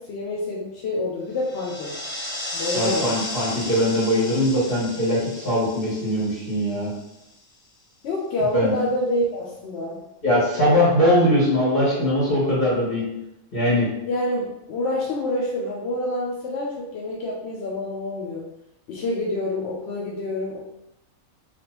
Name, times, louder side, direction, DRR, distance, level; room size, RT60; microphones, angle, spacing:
voice 1, 0.0-1.9 2.5-3.1 8.0-10.0 14.1-18.5 18.9-20.6, left 1 dB, 65° left, -3 dB, 0.7 m, -27 dB
sound 1, 1.4-7.2, left 2 dB, 10° left, 0.5 m, -34 dB
voice 2, 2.7-6.9 8.5-8.7 10.2-13.1 13.5-13.9, equal, 45° left, -8 dB, 1.8 m, -21 dB
3.3 x 2.5 x 2.9 m, 0.88 s
omnidirectional pair, 1.4 m